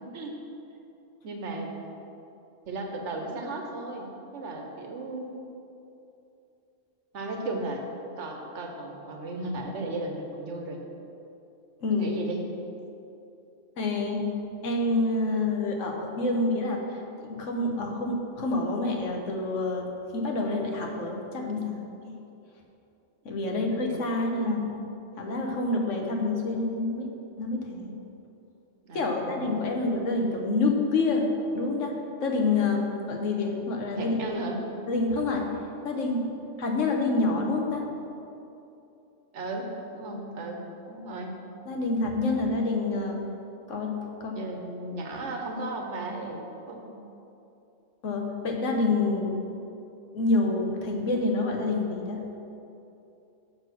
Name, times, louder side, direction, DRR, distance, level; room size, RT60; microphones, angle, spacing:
voice 1, 1.2-1.8 2.7-5.3 7.1-7.8 8.2-10.8 11.9-12.4 23.4-23.8 28.8-29.5 33.9-34.6 39.3-39.7 39.9-41.4 44.3-46.9, right 2 dB, 70° right, 2 dB, 1.2 m, -35 dB
voice 2, 13.8-14.3 14.6-19.9 20.1-21.7 22.1-22.2 23.2-24.6 25.2-27.1 27.4-28.0 28.9-31.9 32.2-34.2 34.9-35.5 35.8-36.3 36.6-37.8 41.7-43.2 43.7-44.4 48.0-49.5 50.1-52.2, left 3 dB, 85° left, 1 dB, 1.3 m, -27 dB
6.6 x 5.7 x 6.1 m, 2.8 s
omnidirectional pair, 1.3 m